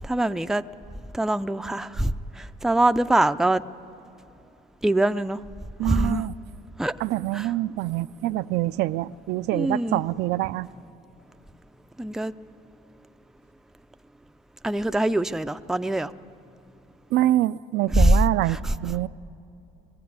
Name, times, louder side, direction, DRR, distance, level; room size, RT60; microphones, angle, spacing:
voice 1, 0.0-0.6 1.1-3.6 4.8-5.4 5.8-6.2 6.8-6.9 7.3-7.5 9.5-10.0 12.0-12.3 14.6-16.1 17.9-18.2 18.5-18.7, right 1 dB, 5° right, 10 dB, 0.4 m, -23 dB
voice 2, 5.8-6.3 7.0-10.7 17.1-19.1, right 15 dB, 80° right, 13 dB, 0.4 m, -25 dB
21.5 x 15.5 x 9.5 m, 2.7 s
cardioid pair, 110°, 17 cm